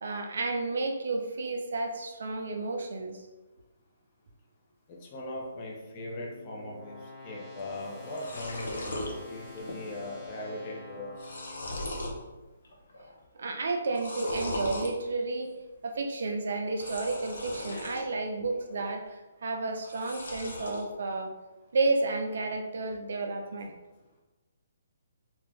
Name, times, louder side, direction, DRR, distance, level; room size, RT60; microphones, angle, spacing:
voice 1, 0.0-3.2 13.3-15.5 15.8-21.3 21.7-23.7, right 3 dB, 70° right, 4 dB, 0.5 m, -31 dB
voice 2, 4.9-11.3, left 1 dB, 35° left, -2 dB, 0.7 m, -39 dB
sound 1, 5.3-12.5, left 2 dB, 15° left, 1.3 m, -48 dB
sound 2, 7.6-7.7 7.9-9.1 9.6-10.0 10.2-10.3 10.9-12.2 12.6-13.1 13.8-14.9 16.7-18.1 18.5-19.1 19.8-20.9, left 1 dB, 80° left, 0.7 m, -38 dB
2.7 x 2.4 x 3.5 m, 1.1 s
hypercardioid pair, 145°, 0 cm